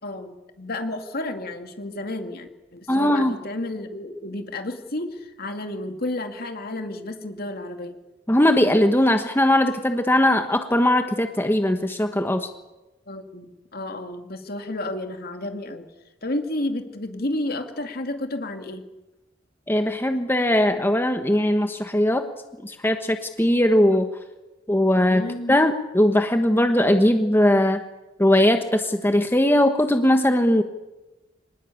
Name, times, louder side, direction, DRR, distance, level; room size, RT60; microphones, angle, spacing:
voice 1, 0.0-8.0 13.1-15.9 16.2-18.9 25.0-25.5, left 1 dB, 55° left, 6 dB, 2.5 m, -31 dB
voice 2, 2.9-3.3 8.3-12.5 19.7-22.3 22.6-24.1 24.7-25.2 25.5-27.8 28.2-30.6, left 1 dB, 10° left, 6 dB, 1.2 m, -19 dB
26.0 x 19.5 x 8.6 m, 1.1 s
head